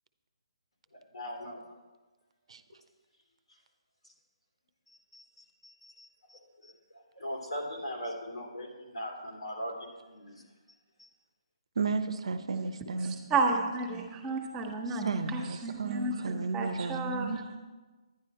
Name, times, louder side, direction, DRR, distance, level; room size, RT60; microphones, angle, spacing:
voice 1, 1.1-1.6 4.9-10.4 11.0-11.1, equal, 85° left, 0 dB, 3.1 m, -41 dB
voice 2, 11.8-13.2 15.0-17.6, right 4 dB, 65° right, 11 dB, 0.8 m, -33 dB
voice 3, 13.0-17.3, right 3 dB, 20° right, 3 dB, 1.3 m, -32 dB
11.0 x 10.0 x 4.3 m, 1.3 s
figure-of-eight pair, 145°, 3 cm